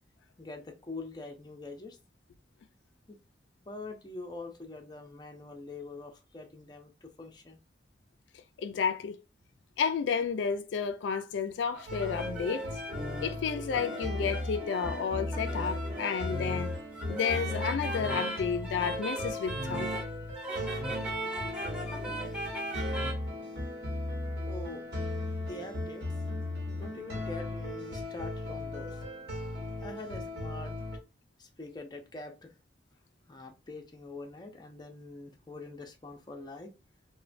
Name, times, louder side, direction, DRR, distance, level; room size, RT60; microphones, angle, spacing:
voice 1, 0.4-2.0 3.6-7.6 22.2-22.4 24.5-24.8 25.3-26.1 26.7-29.0 29.8-30.7 31.4-32.5 33.3-36.7, left 3 dB, 25° left, 0.5 m, -44 dB
voice 2, 8.6-9.2 9.8-12.7 13.2-16.7 17.1-20.0, left 6 dB, 90° left, 0.3 m, -31 dB
sound 1, 11.7-23.1, right 1 dB, 5° right, 0.8 m, -38 dB
sound 2, 11.9-31.0, left 2 dB, 65° right, 1.0 m, -37 dB
3.1 x 2.1 x 2.5 m
head